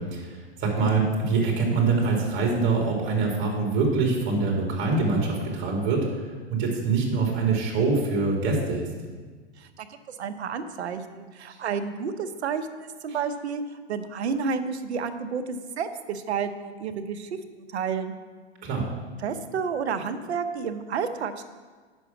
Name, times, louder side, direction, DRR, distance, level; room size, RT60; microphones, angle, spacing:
voice 1, 0.0-8.9 18.6-18.8, right 4 dB, 35° right, -1 dB, 2.9 m, -24 dB
voice 2, 9.6-13.6 13.9-17.3 17.7-18.1 19.2-21.4, right 6 dB, 75° right, 9 dB, 0.9 m, -30 dB
8.1 x 6.3 x 6.0 m, 1.4 s
hypercardioid pair, 110°, 33 cm